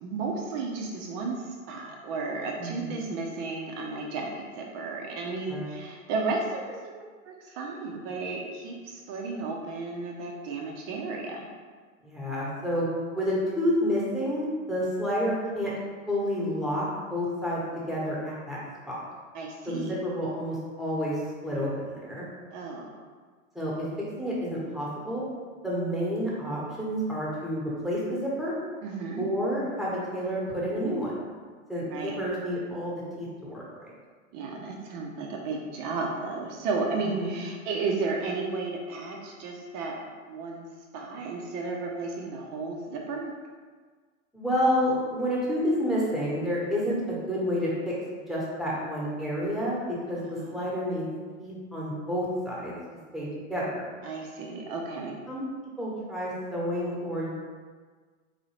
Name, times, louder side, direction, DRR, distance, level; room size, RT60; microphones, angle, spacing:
voice 1, 0.0-6.9 7.2-11.5 19.3-20.0 22.5-22.9 28.8-29.3 31.9-32.2 34.3-40.6 40.9-43.3 50.4-50.7 54.0-55.2, right 3 dB, 40° right, 0 dB, 0.6 m, -33 dB
voice 2, 2.6-3.0 5.5-5.7 12.0-12.9 13.1-15.7 16.1-17.6 17.9-18.6 18.9-19.0 19.7-22.2 23.5-23.7 24.2-25.2 25.6-28.5 29.2-31.3 31.7-33.9 37.1-37.4 44.3-47.9 48.3-49.8 50.1-51.1 51.4-52.7 53.1-53.9 55.3-55.4 55.8-57.3, equal, ahead, -7 dB, 1.1 m, -29 dB
4.0 x 2.7 x 3.1 m, 1.5 s
hypercardioid pair, 105°, 40 cm